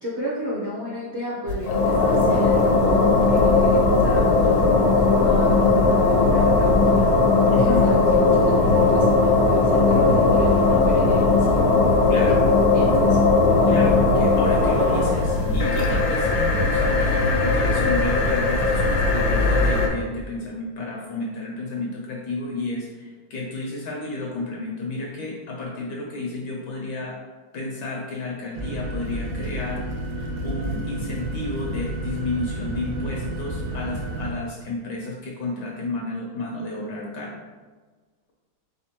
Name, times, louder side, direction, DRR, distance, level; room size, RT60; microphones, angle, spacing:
voice 1, 0.0-7.2 7.6-11.6 12.4-13.2, right 1 dB, 50° right, -8 dB, 0.9 m, -32 dB
sound 1, 1.5-19.9, left 3 dB, 90° left, 1.5 m, -18 dB
voice 2, 7.5-7.9 12.1-12.4 13.7-27.2 27.5-37.3, left 2 dB, 70° left, -1 dB, 1.1 m, -31 dB
sound 2, 28.5-34.3, right 1 dB, 75° right, 1.4 m, -30 dB
4.2 x 3.8 x 2.9 m, 1.4 s
omnidirectional pair, 2.2 m